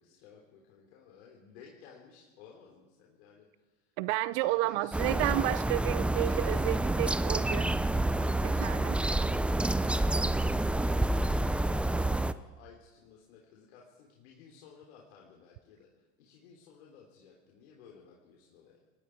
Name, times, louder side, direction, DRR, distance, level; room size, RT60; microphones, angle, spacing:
voice 1, 0.0-3.9 4.4-5.1 6.2-7.4 8.1-18.8, left 6 dB, 80° left, 3.8 m, -55 dB
voice 2, 4.0-7.7 8.6-9.0, right 18 dB, 65° right, 0.7 m, -31 dB
sound 1, 4.9-12.3, right 1 dB, 5° right, 0.6 m, -28 dB
30.0 x 19.5 x 4.7 m
hypercardioid pair, 100°, 32 cm